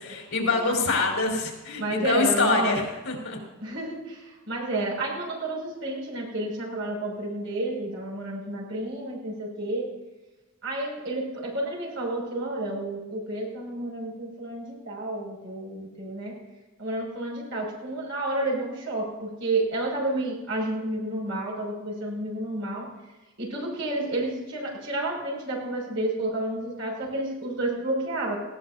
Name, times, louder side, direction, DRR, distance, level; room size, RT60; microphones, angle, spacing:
voice 1, 0.0-3.4, left 3 dB, 85° left, 0 dB, 4.0 m, -25 dB
voice 2, 1.8-2.8 3.6-9.9 10.6-16.4 16.8-22.9 23.4-28.4, right 2 dB, 65° right, -3 dB, 6.0 m, -30 dB
18.5 x 16.0 x 2.7 m, 1.1 s
head